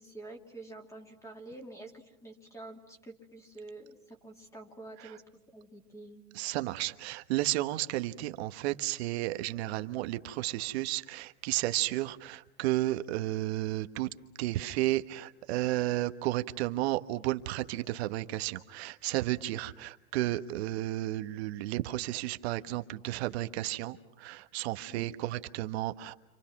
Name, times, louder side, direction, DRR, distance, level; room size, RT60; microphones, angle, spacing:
voice 1, 0.0-5.2 5.5-6.2 24.9-25.2, right 2 dB, 5° left, 2 dB, 2.9 m, -48 dB
voice 2, 6.3-14.1 14.4-26.1, right 16 dB, 50° right, 9 dB, 1.3 m, -32 dB
30.0 x 27.0 x 6.0 m, 0.92 s
hypercardioid pair, 135°, 42 cm